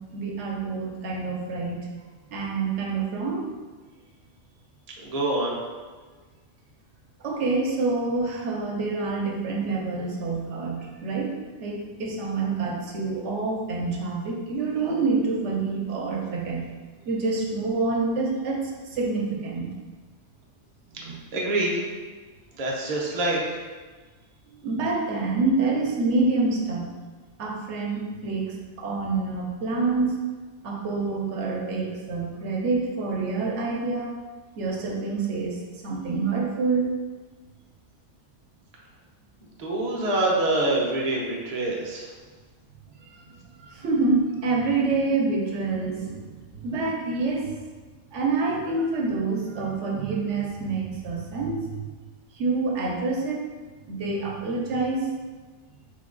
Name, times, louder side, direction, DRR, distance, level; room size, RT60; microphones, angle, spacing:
voice 1, 0.1-1.9 2.3-3.4 7.2-11.3 11.6-16.7 17.1-18.6 18.9-19.7 21.0-21.2 24.6-26.9 27.4-30.2 30.6-34.1 34.6-35.6 35.8-36.9 43.0-47.5 48.1-51.9 52.3-53.4 53.9-55.1, right 3 dB, 75° right, -1 dB, 1.0 m, -27 dB
voice 2, 5.0-5.6 21.3-21.8 22.6-23.6 39.6-42.1, right 2 dB, 40° right, -3 dB, 0.6 m, -25 dB
3.8 x 2.3 x 3.7 m, 1.4 s
omnidirectional pair, 1.3 m